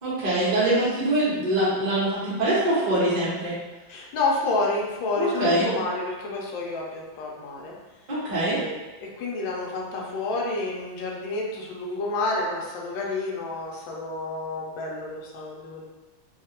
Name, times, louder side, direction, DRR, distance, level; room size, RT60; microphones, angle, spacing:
voice 1, 0.0-3.6 5.2-5.7 8.1-8.6, right 1 dB, 40° right, -9 dB, 0.6 m, -23 dB
voice 2, 3.9-7.7 8.5-15.8, left 2 dB, 75° left, -2 dB, 1.3 m, -29 dB
3.3 x 2.3 x 2.8 m, 1.2 s
omnidirectional pair, 2.3 m